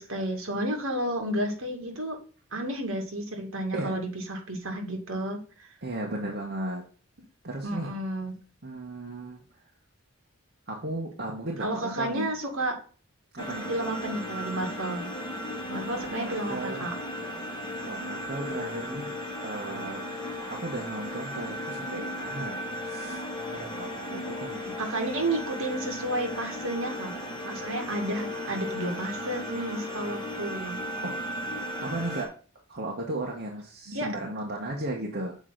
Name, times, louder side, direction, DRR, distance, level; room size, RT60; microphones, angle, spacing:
voice 1, 0.0-2.2 2.5-5.7 7.6-8.4 11.6-12.8 13.7-15.1 15.7-16.9 24.8-27.2 27.4-30.8 33.9-34.3, right 1 dB, 65° right, 3 dB, 2.1 m, -31 dB
voice 2, 5.8-6.8 7.4-7.9 8.6-9.4 10.7-12.3 13.3-13.7 15.9-16.9 17.8-19.1 19.4-20.0 20.5-23.2 23.5-24.8 31.0-31.3 31.8-32.3 32.7-35.4, right 1 dB, 50° right, -2 dB, 1.3 m, -35 dB
sound 1, 13.4-32.3, left 1 dB, 20° left, 1.8 m, -36 dB
7.1 x 4.5 x 3.9 m, 0.38 s
head